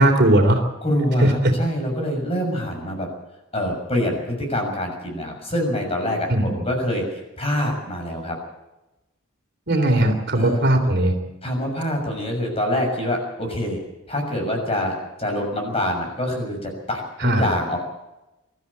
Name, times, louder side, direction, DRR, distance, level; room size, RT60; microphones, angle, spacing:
voice 1, 0.0-0.6 1.2-1.5 6.3-6.5 9.7-11.1 17.2-17.4, right 1 dB, 50° right, 4 dB, 3.4 m, -18 dB
voice 2, 0.8-3.1 3.5-8.4 10.3-10.6 11.4-13.8 14.1-17.8, left 1 dB, 30° left, 2 dB, 6.6 m, -25 dB
24.0 x 13.5 x 8.5 m, 0.98 s
head